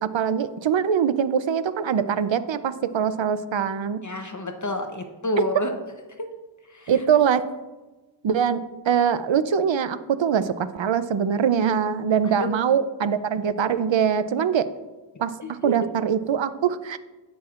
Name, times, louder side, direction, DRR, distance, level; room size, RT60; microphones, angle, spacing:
voice 1, 0.0-4.0 6.9-7.4 8.2-14.7 15.2-17.0, right 7 dB, 75° right, 13 dB, 0.6 m, -23 dB
voice 2, 4.0-5.7 6.2-6.3 6.6-7.0 12.2-12.5 15.4-15.7, left 1 dB, 40° left, 5 dB, 0.8 m, -30 dB
17.0 x 6.0 x 2.4 m, 1.2 s
wide cardioid pair, 70°, 46 cm